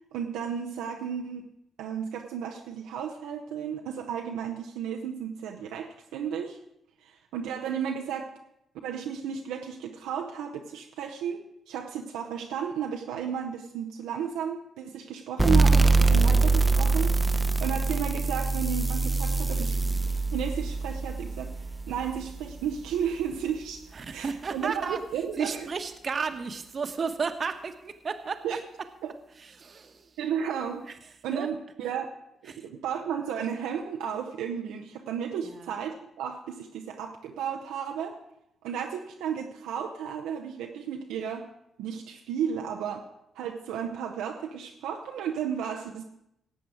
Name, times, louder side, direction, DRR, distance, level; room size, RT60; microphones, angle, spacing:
voice 1, 0.1-1.4 1.8-6.6 7.0-8.3 8.8-19.8 20.1-25.7 28.4-28.6 29.0-29.1 30.2-30.8 31.2-32.1 32.4-38.2 38.6-41.5 41.8-43.1 43.3-46.0, right 8 dB, 70° right, 2 dB, 0.7 m, -33 dB
sound 1, 15.4-22.7, right 3 dB, 15° right, 0.8 m, -24 dB
voice 2, 23.9-25.0 25.4-28.6 29.4-30.2 31.3-31.5 32.5-32.7 35.4-35.7, right 5 dB, 45° right, 8 dB, 1.1 m, -33 dB
17.5 x 8.0 x 4.9 m, 0.83 s
figure-of-eight pair, 40°, 0 cm